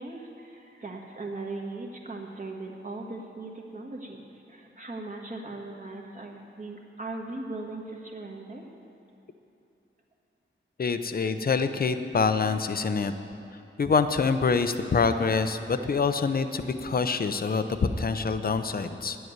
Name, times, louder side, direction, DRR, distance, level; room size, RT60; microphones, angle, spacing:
voice 1, 0.0-8.6, right 2 dB, 35° right, 1 dB, 1.5 m, -39 dB
voice 2, 10.8-13.1 13.8-17.6 18.0-19.2, left 5 dB, 45° left, 10 dB, 0.6 m, -26 dB
10.0 x 7.9 x 9.5 m, 2.8 s
wide cardioid pair, 125°, 21 cm